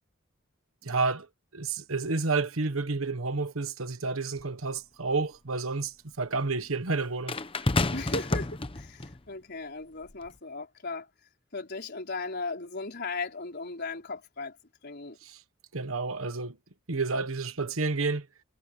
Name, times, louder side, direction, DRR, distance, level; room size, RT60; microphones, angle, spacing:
voice 1, 0.8-1.3 1.5-5.9 6.2-7.4 15.7-16.5 16.9-18.2, right 3 dB, 80° right, 1.4 m, -30 dB
sound 1, 4.4-4.5 7.3-9.2 10.1-10.3, left 2 dB, 25° left, 0.9 m, -29 dB
voice 2, 7.9-11.1 11.5-14.6 14.8-15.2, left 3 dB, 50° left, 4.5 m, -37 dB
head